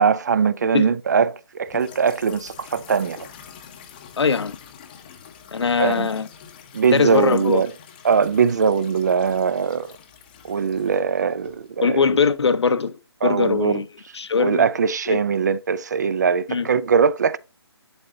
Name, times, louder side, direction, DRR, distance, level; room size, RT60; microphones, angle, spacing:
voice 1, 0.0-3.3 5.8-6.1 6.7-7.7 8.0-9.9 10.4-12.0 13.2-13.8 14.4-17.4, right 6 dB, 40° right, 0.4 m, -21 dB
sink-drain-below, 1.7-11.8, left 8 dB, 20° left, 0.7 m, -45 dB
voice 2, 4.2-4.6 5.5-6.3 6.9-7.6 11.8-13.9 14.1-14.7 15.1-15.2 16.5-16.7, left 5 dB, 80° left, 0.8 m, -21 dB
11.5 x 3.9 x 2.6 m
hypercardioid pair, 165°, 14 cm